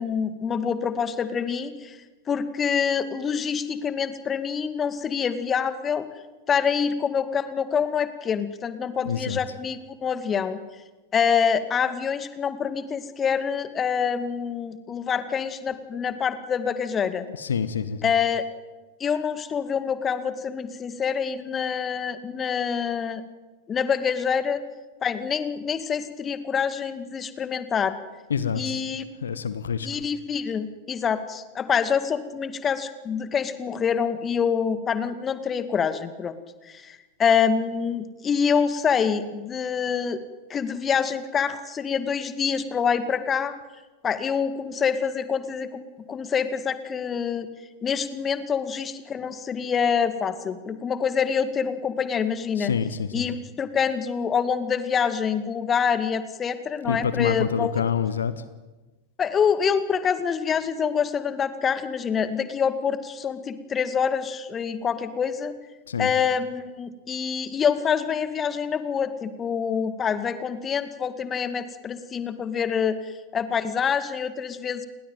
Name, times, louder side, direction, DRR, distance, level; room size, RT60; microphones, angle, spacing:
voice 1, 0.0-2.0 2.3-6.1 6.5-10.6 11.1-17.3 18.0-18.4 19.0-23.2 23.7-24.6 25.0-28.0 28.6-29.1 29.8-36.4 36.6-40.2 40.5-43.5 44.0-45.8 46.1-47.5 47.8-52.7 53.1-57.8 59.2-65.5 66.0-74.8, left 7 dB, 25° left, 12 dB, 2.2 m, -26 dB
voice 2, 9.0-9.4 17.3-18.1 28.3-28.8 29.2-29.9 52.5-53.4 56.8-58.4 65.9-66.1, left 7 dB, 70° left, 14 dB, 1.4 m, -27 dB
29.5 x 21.0 x 9.2 m, 1.2 s
figure-of-eight pair, 90°, 0 cm